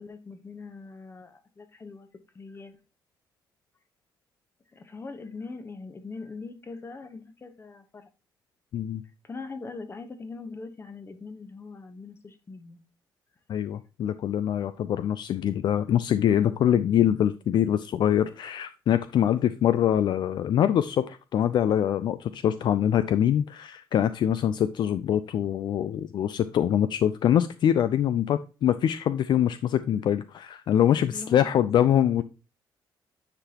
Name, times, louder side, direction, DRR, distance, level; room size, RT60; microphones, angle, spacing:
voice 1, 0.0-2.1 2.3-2.8 4.7-8.1 9.2-12.8 16.4-16.7 31.1-31.5 32.2-32.3, left 4 dB, 30° left, 8 dB, 1.0 m, -41 dB
voice 2, 13.5-32.2, left 10 dB, 60° left, 13 dB, 0.4 m, -24 dB
9.7 x 4.0 x 2.9 m, 0.32 s
cardioid pair, 95°, 8 cm